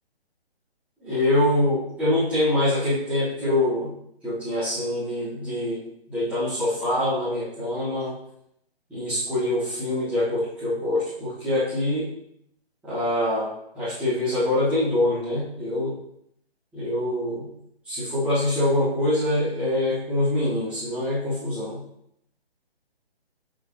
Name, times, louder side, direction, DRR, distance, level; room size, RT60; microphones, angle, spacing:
voice 1, 1.0-3.9 4.2-5.8 6.1-8.2 8.9-12.1 12.8-16.0 16.7-17.5 17.9-21.8, left 1 dB, 5° right, -15 dB, 1.6 m, -24 dB
7.8 x 5.0 x 2.8 m, 0.74 s
figure-of-eight pair, 150°, 31 cm